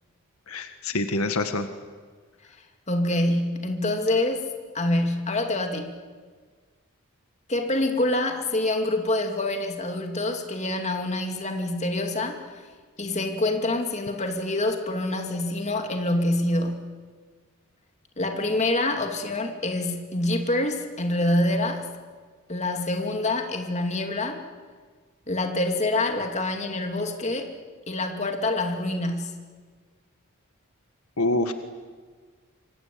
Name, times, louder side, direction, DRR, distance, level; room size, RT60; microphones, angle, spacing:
voice 1, 0.5-1.7 31.2-31.5, left 2 dB, 75° left, 8 dB, 1.7 m, -26 dB
voice 2, 2.9-4.5 4.7-6.0 7.5-12.6 13.0-16.9 18.2-21.9 22.5-24.4 25.3-27.5 27.9-29.4, left 1 dB, 30° left, 4 dB, 2.7 m, -26 dB
26.5 x 25.0 x 8.7 m, 1.5 s
head